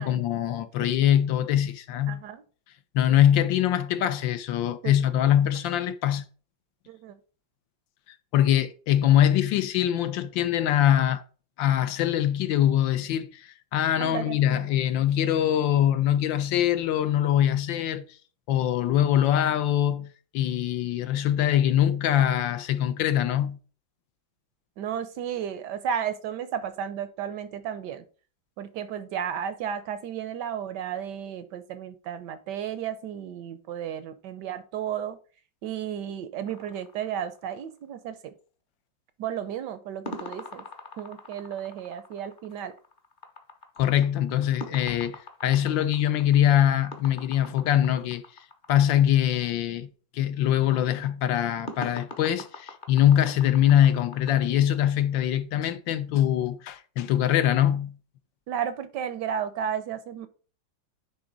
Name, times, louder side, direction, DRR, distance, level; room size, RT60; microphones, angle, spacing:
voice 1, 0.0-2.2 2.9-6.2 8.3-11.2 11.6-18.0 18.5-20.1 20.3-23.6 43.8-48.2 48.7-49.9 50.1-58.0, left 11 dB, 80° left, 1.3 m, -23 dB
voice 2, 2.1-2.4 4.8-4.9 6.9-7.2 14.0-14.7 24.8-28.0 28.6-35.2 35.6-38.3 39.2-40.6 41.0-42.7 58.5-60.3, right 9 dB, 70° right, 1.1 m, -33 dB
sound 1, 36.5-37.9 40.1-48.7 51.7-54.3, left 2 dB, 40° left, 0.8 m, -43 dB
9.7 x 3.8 x 3.8 m
omnidirectional pair, 2.1 m